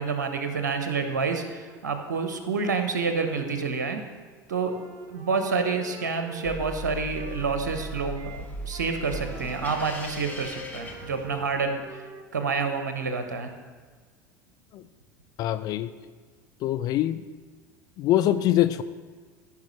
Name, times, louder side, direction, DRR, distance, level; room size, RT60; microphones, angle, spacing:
voice 1, 0.0-4.0 4.5-12.0 12.3-13.5, right 4 dB, 75° right, 6 dB, 0.9 m, -28 dB
Wind instrument woodwind instrument, 4.6-8.5 8.7-12.8, right 4 dB, 40° right, 0.9 m, -45 dB
sound 1, 6.4-11.7, equal, 15° left, 1.4 m, -38 dB
voice 2, 15.4-15.9 16.6-17.2 18.0-18.8, left 13 dB, 40° left, 12 dB, 0.3 m, -23 dB
14.5 x 5.7 x 3.2 m, 1.5 s
figure-of-eight pair, 75°, 10 cm